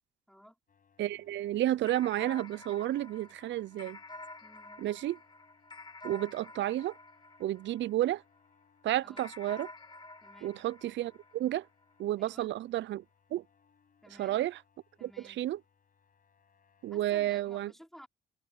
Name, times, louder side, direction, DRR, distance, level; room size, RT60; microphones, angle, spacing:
sound 1, 0.7-17.4, left 6 dB, 45° left, 6.5 m, -69 dB
voice 1, 1.0-4.0 4.8-5.2 6.0-6.9 7.4-8.2 8.8-9.7 10.4-11.7 12.0-13.0 13.3-13.4 14.2-14.5 15.0-15.1 15.4-15.6 16.8-17.7, right 14 dB, 70° right, 0.5 m, -31 dB
sound 2, 1.9-8.5 9.2-11.9, left 2 dB, 20° left, 2.0 m, -49 dB
voice 2, 4.4-4.9 9.0-9.3 10.2-10.6 12.2-12.5 14.0-14.4 15.0-15.4 16.9-18.1, equal, ahead, 4.5 m, -55 dB
open air
cardioid pair, 90°, 20 cm